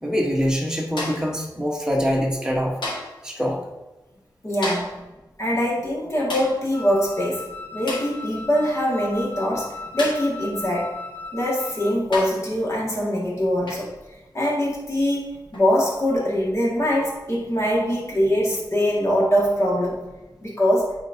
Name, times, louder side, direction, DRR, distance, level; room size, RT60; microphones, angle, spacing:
voice 1, 0.0-3.0 3.2-3.6, equal, 10° right, -1 dB, 1.3 m, -24 dB
sound 1, 1.0-1.4 2.8-3.2 4.6-5.0 6.3-6.6 7.9-8.2 10.0-10.3 11.4-11.5 12.1-12.5 13.7-13.9 15.5-15.7, left 2 dB, 80° left, 1.7 m, -31 dB
voice 2, 4.4-5.0 5.4-7.5 7.7-11.0 11.3-13.9 14.3-20.0 20.4-20.9, equal, 40° left, -4 dB, 2.0 m, -23 dB
Wind instrument woodwind instrument, 6.7-12.1, left 3 dB, 20° left, 0.7 m, -37 dB
8.8 x 4.5 x 2.8 m, 1.1 s
wide cardioid pair, 110°, 8 cm